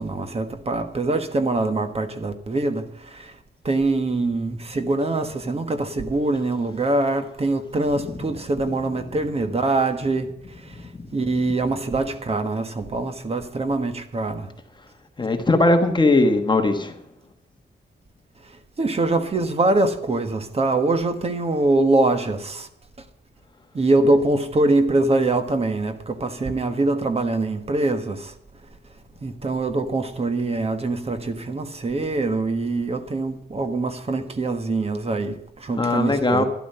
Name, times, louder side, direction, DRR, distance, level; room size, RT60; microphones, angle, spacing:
voice 1, 0.0-3.3 3.6-10.3 10.7-10.8 11.1-14.5 18.8-22.7 23.7-28.3 29.2-36.4, right 2 dB, 35° right, 1.4 m, -23 dB
voice 2, 15.2-16.9 35.7-36.4, left 2 dB, 25° left, 1.3 m, -19 dB
12.5 x 12.0 x 5.6 m
wide cardioid pair, 155°, 18 cm